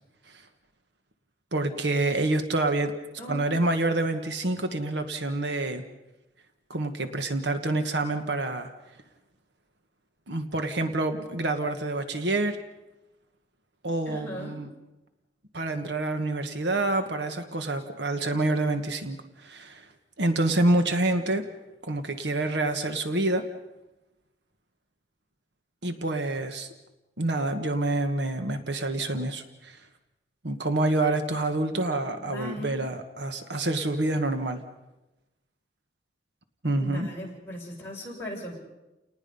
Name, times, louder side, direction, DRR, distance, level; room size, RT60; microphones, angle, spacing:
voice 1, 1.5-2.9 3.3-5.8 6.7-8.7 10.3-12.6 13.8-14.7 15.5-19.9 20.2-21.5 21.8-23.5 25.8-26.7 27.2-29.8 30.4-34.6 36.6-37.1, right 2 dB, 70° right, 7 dB, 1.4 m, -27 dB
voice 2, 3.2-3.5 14.1-14.6 32.2-32.9 36.8-38.6, equal, 15° left, -4 dB, 7.0 m, -38 dB
30.0 x 19.5 x 5.5 m, 1.0 s
head